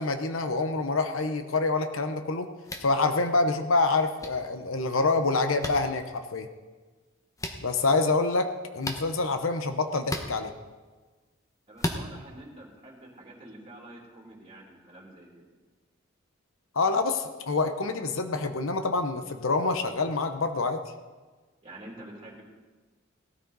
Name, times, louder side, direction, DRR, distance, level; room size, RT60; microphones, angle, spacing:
voice 1, 0.0-2.5 2.8-6.5 7.6-10.5 16.7-20.8, left 3 dB, 75° left, 7 dB, 0.9 m, -26 dB
sound 1, 2.6-2.9 4.2-4.3 5.6-5.7 7.4-7.6 8.8-9.0 10.0-10.3 11.8-12.0, left 1 dB, 15° left, 1.1 m, -32 dB
voice 2, 11.7-15.4 21.6-22.4, right 1 dB, 25° right, -2 dB, 3.0 m, -47 dB
18.0 x 13.5 x 4.0 m, 1.3 s
head